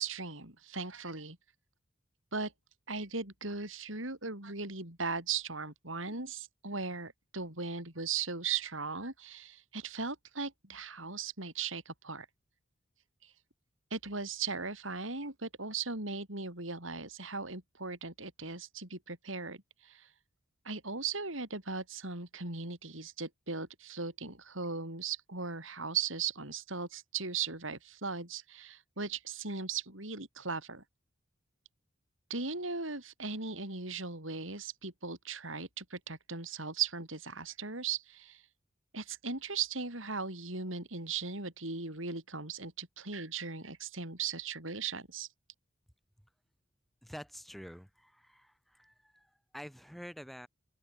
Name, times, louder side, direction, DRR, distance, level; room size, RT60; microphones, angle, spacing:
voice 1, 0.0-1.4 2.3-2.5 2.9-12.3 13.2-13.3 13.9-20.1 20.7-30.8 32.3-38.4 38.9-45.3, right 5 dB, 70° right, 7.3 m, -38 dB
voice 2, 47.0-50.5, equal, ahead, 5.2 m, -48 dB
open air
head